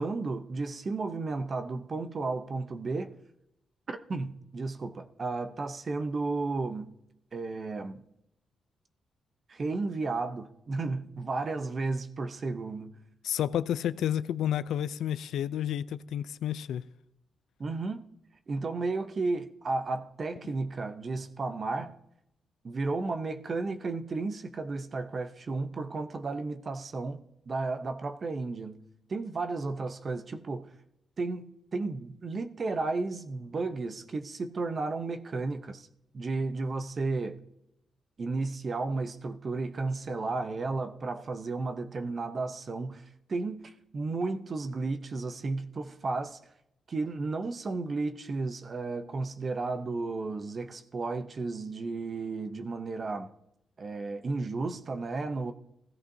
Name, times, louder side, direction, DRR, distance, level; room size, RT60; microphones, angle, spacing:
voice 1, 0.0-3.2 3.9-6.9 7.3-8.0 9.5-12.9 17.6-18.0 18.5-22.0 22.6-27.2 27.5-28.8 29.1-30.7 31.2-35.9 36.1-37.4 38.2-43.0 43.3-46.4 46.9-53.3 53.8-55.5, right 3 dB, 45° right, 0.7 m, -33 dB
voice 2, 13.2-16.9, left 10 dB, 90° left, 0.4 m, -30 dB
16.5 x 14.5 x 2.7 m
cardioid pair, 90°, 0 cm